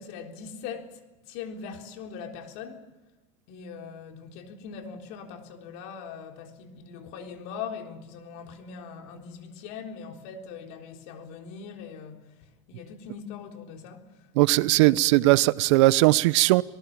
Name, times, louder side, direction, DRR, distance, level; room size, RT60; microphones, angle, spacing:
voice 1, 0.0-2.8 3.5-15.3, left 6 dB, 60° left, 3.8 m, -41 dB
voice 2, 14.4-16.6, right 19 dB, 70° right, 0.8 m, -19 dB
26.5 x 19.0 x 7.4 m
supercardioid pair, 135°, 16 cm